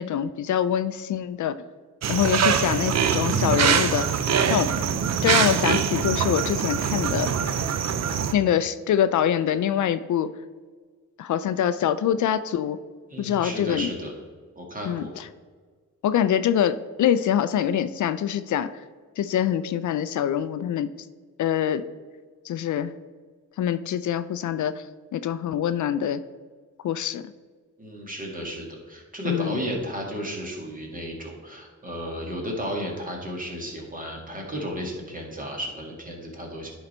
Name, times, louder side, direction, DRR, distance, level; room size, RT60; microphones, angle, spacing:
voice 1, 0.0-1.5 2.1-4.1 4.5-4.7 5.2-7.4 8.3-10.3 11.2-12.8 13.2-13.9 14.9-15.3 16.0-18.7 19.2-20.9 21.4-21.8 22.5-22.9 23.6-24.7 25.1-26.2 26.8-27.2 29.2-29.6, left 9 dB, 70° left, 13 dB, 0.4 m, -24 dB
sound 1, 2.0-8.3, right 7 dB, 55° right, 0.6 m, -23 dB
voice 2, 13.1-14.1 14.6-15.1 27.8-36.7, equal, 25° right, 0 dB, 2.1 m, -33 dB
10.0 x 4.0 x 4.3 m, 1.5 s
cardioid pair, 75°, 31 cm